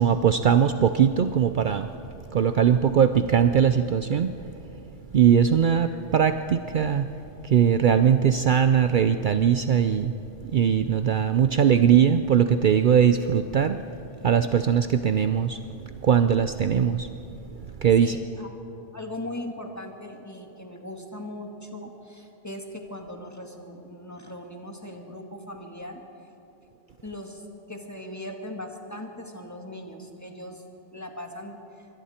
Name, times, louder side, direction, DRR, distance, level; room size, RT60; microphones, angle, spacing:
voice 1, 0.0-1.9 2.3-4.4 5.1-7.1 7.4-10.1 10.5-13.8 14.2-15.6 16.0-17.1 17.8-18.2, right 8 dB, 55° right, 9 dB, 0.7 m, -20 dB
voice 2, 18.0-18.5 18.9-26.0 27.0-30.6 30.9-31.9, left 1 dB, 15° left, 2 dB, 1.9 m, -39 dB
26.0 x 23.5 x 4.4 m, 2.9 s
omnidirectional pair, 1.1 m